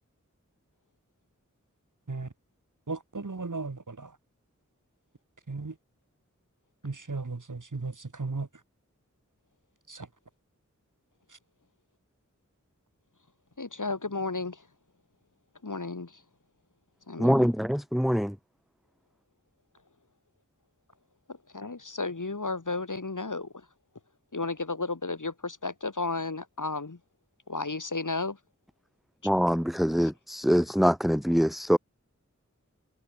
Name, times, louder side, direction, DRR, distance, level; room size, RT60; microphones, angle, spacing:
voice 1, 2.9-4.1 5.5-5.7 6.8-8.5 9.9-10.1 11.3-11.4, right 3 dB, 80° right, 2.8 m, -36 dB
voice 2, 13.6-14.6 15.6-16.2 17.1-17.5 21.3-23.7 24.3-27.0 27.5-28.4 30.0-30.1, left 3 dB, 80° left, 4.1 m, -33 dB
voice 3, 17.2-18.3 29.2-31.8, equal, ahead, 3.8 m, -24 dB
wide cardioid pair, 45°, 30 cm